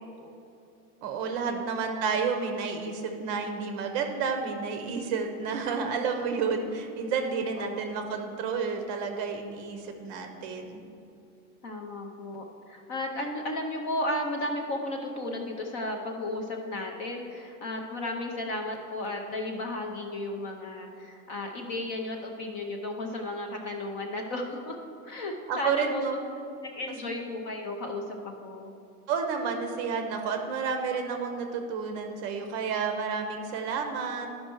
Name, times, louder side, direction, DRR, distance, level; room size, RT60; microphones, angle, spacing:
voice 1, 1.0-10.8 25.5-26.2 29.1-34.3, right 5 dB, 30° right, 5 dB, 0.7 m, -30 dB
voice 2, 11.6-24.8 25.1-26.0 26.6-28.7, left 1 dB, 25° left, 2 dB, 0.5 m, -34 dB
12.0 x 5.5 x 4.4 m, 2.7 s
supercardioid pair, 155°, 45 cm